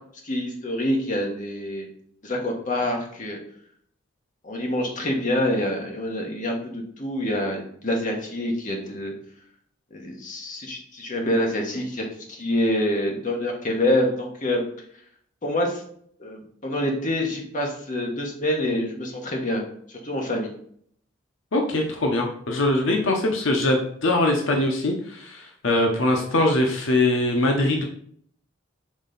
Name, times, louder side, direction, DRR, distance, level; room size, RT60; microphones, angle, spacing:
voice 1, 0.2-1.9 2.2-3.4 4.4-9.1 9.9-14.6 15.4-15.8 16.2-19.6 19.9-20.5, left 1 dB, 40° left, 1 dB, 1.2 m, -26 dB
voice 2, 21.5-27.8, left 2 dB, 75° left, 2 dB, 0.8 m, -22 dB
6.2 x 4.0 x 3.9 m, 0.63 s
head